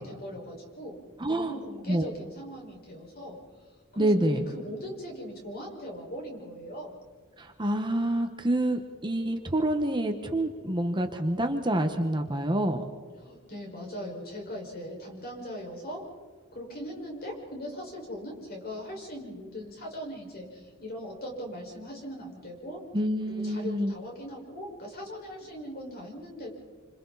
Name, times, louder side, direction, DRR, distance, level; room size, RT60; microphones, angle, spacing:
voice 1, 0.0-3.4 3.9-7.0 13.2-16.0 16.5-22.8 23.2-26.5, equal, 45° left, 0 dB, 5.5 m, -40 dB
voice 2, 1.2-1.5 1.9-2.1 4.0-4.5 7.4-12.8 22.9-23.9, right 1 dB, 20° right, 5 dB, 1.4 m, -27 dB
28.5 x 26.0 x 4.2 m, 1.5 s
head